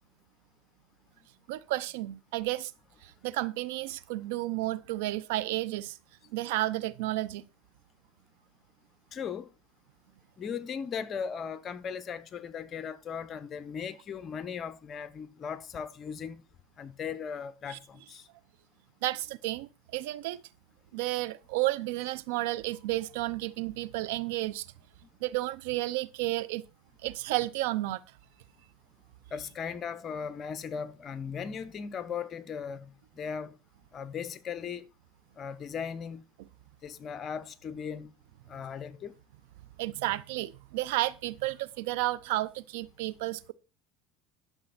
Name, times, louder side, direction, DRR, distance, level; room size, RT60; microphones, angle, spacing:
voice 1, 1.5-2.7 3.0-6.0 6.3-7.4 17.7-17.8 19.0-20.4 20.9-24.7 25.2-26.6 27.0-28.0 39.8-43.5, right 17 dB, 85° right, 0.6 m, -32 dB
voice 2, 9.1-9.5 10.4-16.4 16.8-18.2 29.3-32.9 33.2-33.5 33.9-34.8 35.4-36.2 36.8-38.1 38.5-39.1, left 7 dB, 40° left, 1.0 m, -37 dB
11.5 x 6.8 x 4.3 m
supercardioid pair, 110°, 0 cm